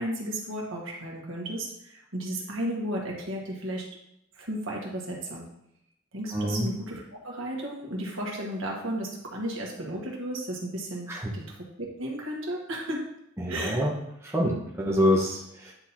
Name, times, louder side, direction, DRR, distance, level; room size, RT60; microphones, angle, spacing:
voice 1, 0.0-3.9 4.3-5.5 6.1-13.1 13.5-13.9, right 1 dB, 60° right, -2 dB, 1.8 m, -34 dB
voice 2, 6.3-6.7 11.1-11.3 13.4-13.9 14.2-15.7, equal, 10° right, -3 dB, 1.1 m, -26 dB
9.7 x 3.8 x 4.4 m, 0.77 s
head